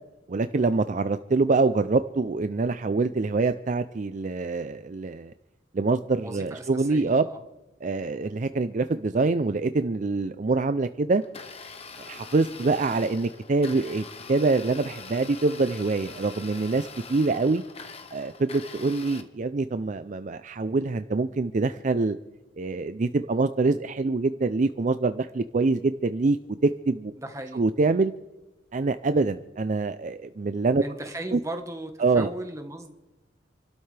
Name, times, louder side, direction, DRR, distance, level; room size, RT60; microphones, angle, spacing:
voice 1, 0.3-5.3 5.7-7.2 7.8-11.2 12.1-17.6 18.1-22.2 22.6-26.4 26.6-27.1 27.5-28.1 28.7-30.8 31.3-31.4 32.0-32.3, right 3 dB, 45° right, 11 dB, 0.5 m, -25 dB
voice 2, 6.2-7.4 27.2-27.6 30.8-32.9, right 1 dB, 15° right, 5 dB, 1.3 m, -37 dB
Domestic sounds home sounds, 11.2-19.2, left 4 dB, 35° left, 1.1 m, -43 dB
28.5 x 12.5 x 3.4 m, 1.0 s
head